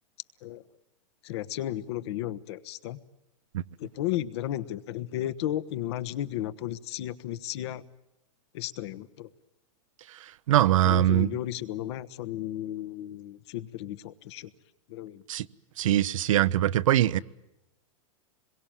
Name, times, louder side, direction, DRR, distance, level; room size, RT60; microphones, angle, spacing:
voice 1, 1.2-3.0 3.8-7.8 8.5-9.3 10.8-14.5 14.9-15.2, left 13 dB, 55° left, 1.3 m, -34 dB
voice 2, 10.5-11.3 15.3-15.5 15.8-17.2, right 13 dB, 75° right, 0.9 m, -22 dB
27.0 x 22.5 x 9.1 m
supercardioid pair, 160°, 17 cm